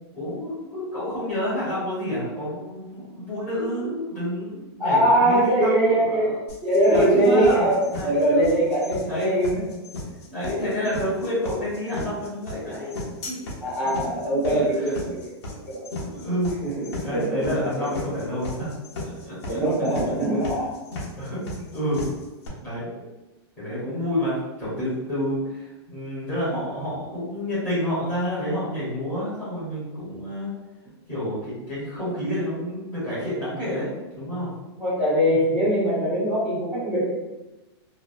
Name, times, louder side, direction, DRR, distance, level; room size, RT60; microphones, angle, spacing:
voice 1, 0.1-6.4 6.8-8.5 9.1-9.3 10.3-12.9 13.2-13.5 14.5-15.0 15.5-15.6 16.0-18.7 19.0-19.6 20.1-20.2 21.2-21.4 21.7-22.1 22.6-23.0 23.6-30.5 31.1-34.5, equal, 15° left, -13 dB, 1.0 m, -29 dB
voice 2, 4.8-9.5 13.6-15.3 15.6-15.8 16.6-17.9 19.5-20.7 21.3-21.4 34.8-37.1, right 1 dB, ahead, -16 dB, 0.6 m, -22 dB
sound 1, 6.5-22.5, left 2 dB, 75° left, 1.0 m, -35 dB
3.0 x 2.1 x 2.6 m, 1.1 s
supercardioid pair, 180°, 14 cm